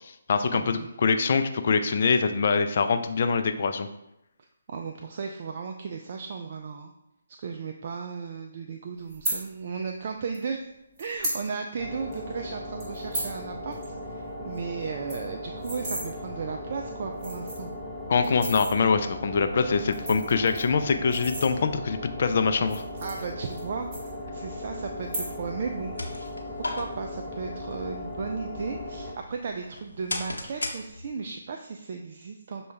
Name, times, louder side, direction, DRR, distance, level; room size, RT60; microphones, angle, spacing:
voice 1, 0.0-3.9 18.1-22.8, left 5 dB, 50° left, 7 dB, 0.4 m, -24 dB
voice 2, 0.5-0.9 4.7-6.9 7.4-10.6 11.0-17.7 23.0-25.9 26.6-32.7, right 5 dB, 45° right, 4 dB, 0.3 m, -35 dB
sound 1, 9.1-9.4 10.3-10.4 11.0-11.4 11.8-11.9 12.1-12.3 12.8-13.4 13.7-13.9 14.1-14.2 14.5-14.6 14.9-16.0 16.7-16.8 17.1-17.7 18.2-18.7 19.7-21.9 22.6-23.6 23.9-24.5 25.0-25.6 25.9-26.3, right 1 dB, 25° right, 1.7 m, -34 dB
sound 2, 11.8-29.1, left 1 dB, 5° left, 0.8 m, -38 dB
sound 3, 25.6-31.4, left 2 dB, 80° left, 0.8 m, -38 dB
6.2 x 2.3 x 3.3 m, 0.85 s
figure-of-eight pair, 145°, 0 cm